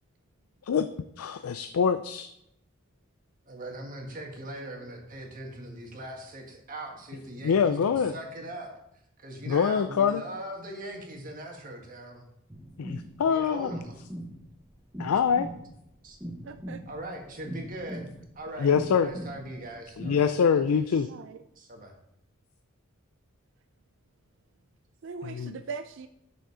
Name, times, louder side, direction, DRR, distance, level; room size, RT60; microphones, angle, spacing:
voice 1, 1.2-2.3 7.4-8.1 9.5-10.2 12.8-13.7 15.0-15.5 18.6-19.1 20.0-21.1 25.2-25.5, left 6 dB, 90° left, 10 dB, 0.4 m, -24 dB
voice 2, 3.5-8.7 9.2-12.3 13.2-14.0 16.0-16.2 16.9-18.7 19.0-20.2 20.5-21.1 21.5-21.9, right 1 dB, 40° right, 2 dB, 1.5 m, -40 dB
sound 1, 12.5-20.2, right 1 dB, 10° right, 0.9 m, -41 dB
voice 3, 16.4-16.8 21.1-21.4 25.0-26.1, right 5 dB, 60° right, 9 dB, 0.4 m, -40 dB
6.9 x 6.4 x 4.8 m, 0.79 s
head